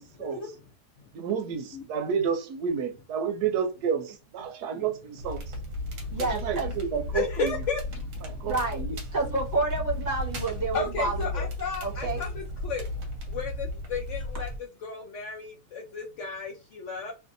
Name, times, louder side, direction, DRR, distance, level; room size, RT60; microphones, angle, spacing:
voice 1, 0.2-0.6 1.0-1.1 1.7-1.8 5.8-6.2 7.1-8.6 10.7-12.8 13.3-17.1, left 5 dB, 65° left, 0.7 m, -34 dB
voice 2, 1.1-5.4 6.2-7.5 8.2-8.9, right 7 dB, 80° right, 1.1 m, -30 dB
Crackle, 5.2-14.6, left 1 dB, 60° right, 1.0 m, -35 dB
voice 3, 6.1-6.7 8.4-8.8 9.1-11.4 11.8-12.2, right 3 dB, 30° right, 1.1 m, -29 dB
2.7 x 2.6 x 2.5 m
omnidirectional pair, 1.7 m